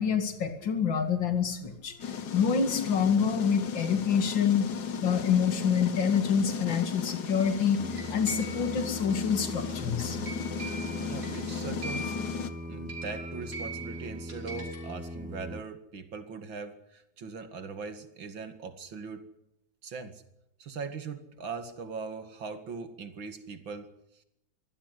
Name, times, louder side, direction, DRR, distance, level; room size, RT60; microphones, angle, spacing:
voice 1, 0.0-2.0 2.3-4.7 5.0-10.2, left 7 dB, 75° left, 8 dB, 2.9 m, -27 dB
sound 1, 2.0-12.5, left 6 dB, 60° left, 1.9 m, -35 dB
Singing, 7.7-15.6, equal, 15° right, 0.3 m, -40 dB
sound 2, 7.9-15.2, right 1 dB, 45° right, 5.6 m, -43 dB
voice 2, 11.1-12.2 12.7-19.2 19.8-20.2 20.6-23.9 24.1-24.2, right 5 dB, 80° right, 9 dB, 3.0 m, -40 dB
24.0 x 16.0 x 8.3 m, 0.83 s
omnidirectional pair, 2.1 m